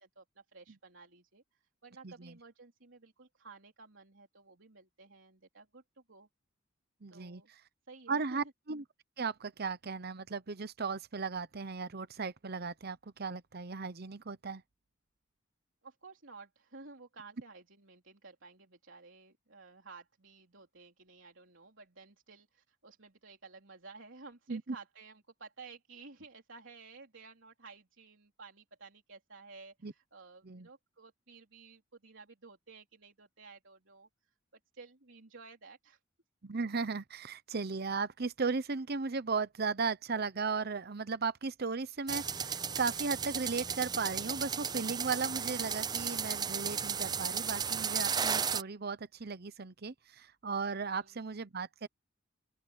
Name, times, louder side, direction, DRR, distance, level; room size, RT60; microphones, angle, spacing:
voice 1, 0.0-6.3 7.1-7.5 7.9-8.4 15.8-34.3 34.7-36.0 50.9-51.2, right 4 dB, 70° right, 3.9 m, -54 dB
voice 2, 7.0-7.4 8.1-8.8 9.2-14.6 24.5-24.6 29.8-29.9 30.4-30.7 36.4-51.9, right 4 dB, 55° right, 0.9 m, -36 dB
sound 1, 42.1-48.6, right 7 dB, 20° right, 0.5 m, -34 dB
open air
head